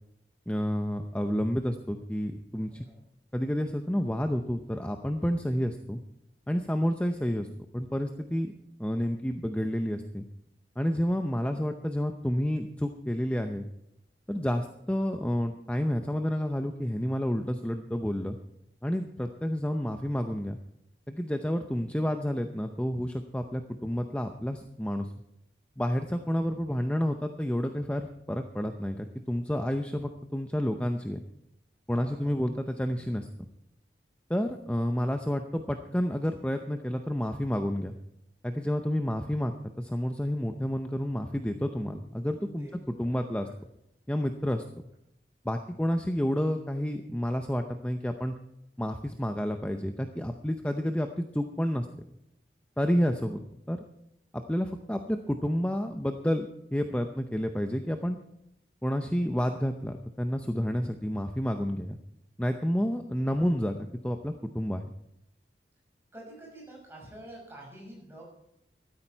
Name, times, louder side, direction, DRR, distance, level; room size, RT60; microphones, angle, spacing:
voice 1, 0.5-2.9 3.3-6.0 6.5-7.5 7.7-8.5 8.8-10.3 10.8-13.7 14.3-18.4 18.8-20.6 21.1-25.1 25.8-31.2 31.9-33.3 34.3-37.9 38.4-43.5 44.1-44.6 45.4-48.3 48.8-51.9 52.8-53.4 53.7-53.8 54.3-58.2 58.8-62.0 62.4-64.9, equal, 5° left, 6 dB, 0.6 m, -30 dB
voice 2, 2.7-3.0 10.9-11.2 31.9-32.4 42.6-43.5 52.8-53.0 62.8-63.0 66.1-68.2, right 1 dB, 15° right, -2 dB, 6.0 m, -49 dB
14.5 x 13.0 x 4.6 m, 0.82 s
head